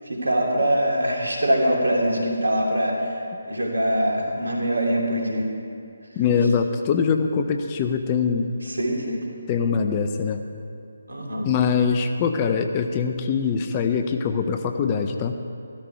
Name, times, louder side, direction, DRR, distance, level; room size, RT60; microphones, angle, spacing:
voice 1, 0.0-3.2 3.5-5.5 8.6-9.2 11.1-11.5, equal, 75° right, -1 dB, 3.1 m, -23 dB
voice 2, 6.2-8.5 9.5-10.4 11.4-15.3, left 6 dB, 25° left, 6 dB, 0.7 m, -23 dB
15.0 x 13.0 x 4.6 m, 2.6 s
figure-of-eight pair, 150°, 0 cm